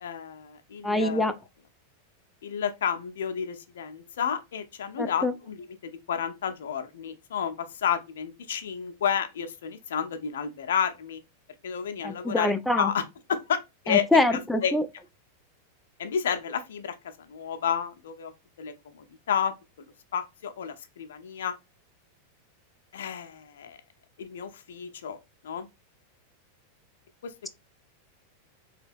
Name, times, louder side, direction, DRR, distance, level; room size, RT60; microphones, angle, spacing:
voice 1, 0.0-1.3 2.4-11.2 11.6-13.0 13.3-13.6 13.8-14.0 14.3-14.7 16.0-18.3 18.6-19.9 20.1-21.5 22.9-23.8 24.2-25.2 25.4-25.7 27.2-27.3, left 7 dB, 60° left, 0.5 m, -31 dB
voice 2, 0.8-1.3 5.0-5.3 12.0-12.9 13.9-14.8, left 2 dB, 5° left, 0.3 m, -24 dB
3.3 x 2.8 x 2.5 m
figure-of-eight pair, 90°, 0 cm